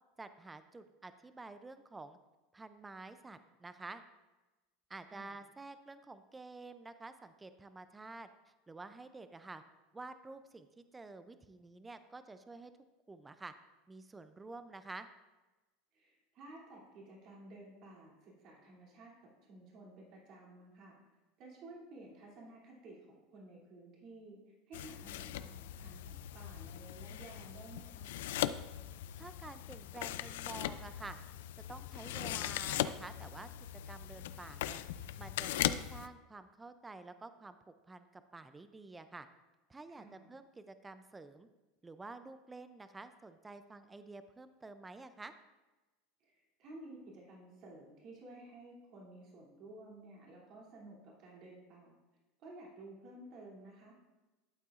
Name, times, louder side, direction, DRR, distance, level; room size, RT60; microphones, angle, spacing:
voice 1, 0.2-2.2 2.5-4.0 4.9-9.6 9.9-12.7 13.1-13.5 13.9-15.1 29.2-31.2 31.7-33.5 33.9-39.3 39.7-41.5 41.8-45.3, right 3 dB, 10° right, 10 dB, 0.4 m, -50 dB
voice 2, 15.9-19.1 19.5-21.0 21.4-24.4 24.7-28.1 39.9-40.3 46.2-52.0 52.4-54.0, right 2 dB, 45° right, -3 dB, 2.7 m, -54 dB
sound 1, 24.7-36.1, left 12 dB, 85° left, 0.4 m, -39 dB
12.0 x 8.4 x 2.5 m, 1.1 s
supercardioid pair, 145°, 0 cm